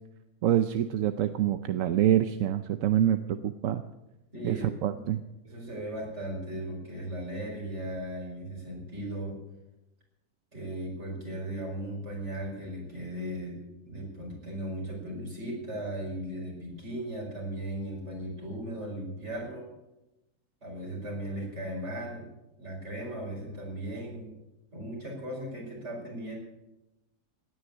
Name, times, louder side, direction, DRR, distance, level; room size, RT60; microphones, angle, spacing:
voice 1, 0.4-3.8 4.4-4.6 4.8-5.2, right 11 dB, 65° right, 10 dB, 1.0 m, -26 dB
voice 2, 4.3-5.0 5.4-9.4 10.5-13.6 13.9-19.7 20.6-22.3 22.6-24.3 24.7-26.3, right 1 dB, 45° right, -1 dB, 5.5 m, -37 dB
18.0 x 9.7 x 7.2 m, 0.97 s
omnidirectional pair, 1.6 m